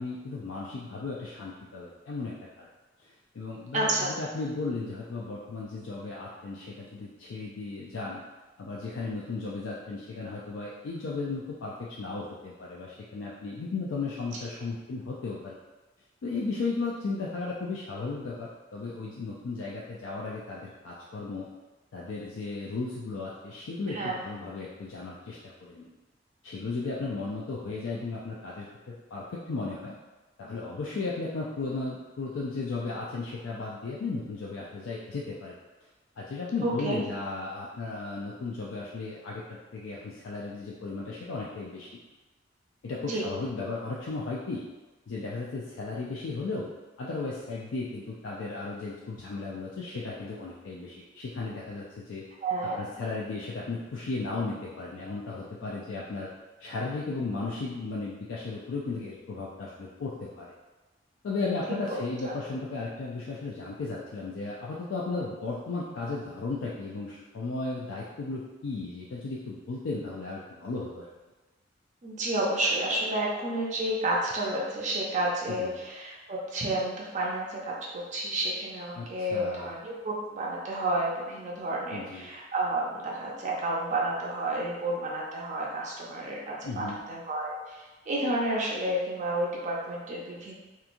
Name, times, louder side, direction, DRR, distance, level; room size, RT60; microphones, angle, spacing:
voice 1, 0.0-2.7 3.3-8.2 8.6-15.6 16.2-21.5 21.9-25.9 26.4-29.9 30.4-35.6 36.2-39.4 39.7-41.9 42.8-44.6 45.1-46.7 47.0-52.2 52.8-56.3 56.6-60.5 61.2-71.1 75.5-75.8 78.9-79.7 81.9-82.3 86.6-87.0, left 3 dB, 70° left, -5 dB, 0.4 m, -35 dB
voice 2, 3.7-4.1 23.9-24.2 36.6-37.0 43.0-43.2 52.4-52.9 61.7-62.3 72.0-90.5, right 1 dB, 40° right, -3 dB, 0.4 m, -31 dB
2.9 x 2.3 x 2.5 m, 1.2 s
head